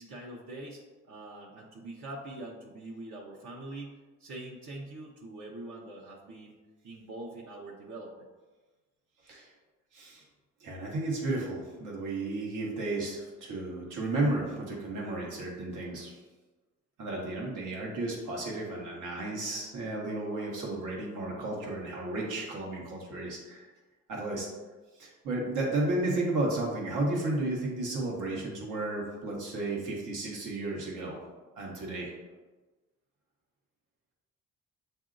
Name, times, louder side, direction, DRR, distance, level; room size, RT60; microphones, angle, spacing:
voice 1, 0.0-6.6 6.8-8.3, right 2 dB, 70° right, -3 dB, 0.8 m, -44 dB
voice 2, 9.9-10.2 10.6-16.1 17.0-23.7 24.1-24.5 25.0-31.2 31.6-32.1, right 2 dB, 85° right, -2 dB, 1.2 m, -33 dB
7.6 x 2.7 x 2.5 m, 1.2 s
cardioid pair, 90°, 30 cm